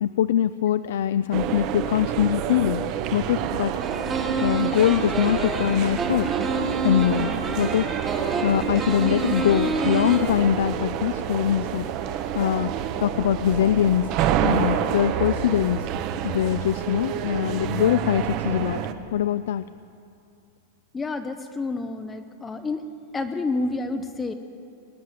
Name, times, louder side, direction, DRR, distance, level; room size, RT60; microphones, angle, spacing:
voice 1, 0.0-2.9 3.1-3.7 4.4-6.3 6.8-7.9 8.4-12.7 13.0-14.1 14.4-15.9 16.2-18.8 19.1-19.6, left 10 dB, 75° left, 14 dB, 0.3 m, -23 dB
sound 1, 1.3-18.9, right 9 dB, 35° right, 0.7 m, -28 dB
sound 2, 3.8-10.2, right 3 dB, 15° right, 1.2 m, -28 dB
voice 2, 20.9-22.8 23.1-24.3, left 3 dB, 10° left, 8 dB, 0.5 m, -29 dB
20.0 x 7.6 x 9.6 m, 2.5 s
supercardioid pair, 165°, 0 cm